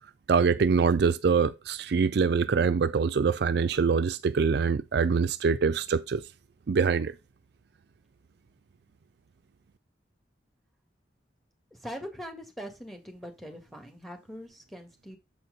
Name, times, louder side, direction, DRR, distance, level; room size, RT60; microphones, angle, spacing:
voice 1, 0.3-6.2 6.7-7.1, right 5 dB, 60° right, 0.4 m, -24 dB
voice 2, 11.7-15.2, equal, ahead, 1.6 m, -42 dB
7.6 x 4.3 x 5.1 m
head